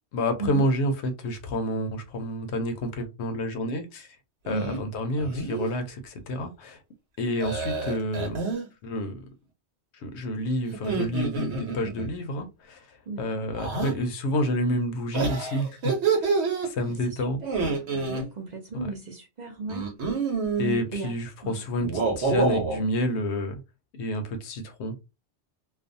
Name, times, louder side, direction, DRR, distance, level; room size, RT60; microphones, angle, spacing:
voice 1, 0.1-4.1 4.4-6.8 7.2-8.4 8.8-9.2 9.9-15.9 16.2-16.3 16.6-17.4 20.6-23.6 23.9-24.9, equal, 75° left, 0.8 m, -29 dB
voice 2, 4.5-4.8 13.1-13.5 16.9-17.2 17.4-19.9 20.9-21.1 21.4-21.6, right 3 dB, 50° right, 0.6 m, -35 dB
sound 1, 4.5-4.8 5.2-5.7 7.4-8.7 10.7-12.1 13.6-13.9 15.1-16.7 17.4-18.2 19.7-20.8 21.8-22.8, right 4 dB, 75° right, 1.0 m, -27 dB
2.4 x 2.2 x 2.6 m
omnidirectional pair, 1.2 m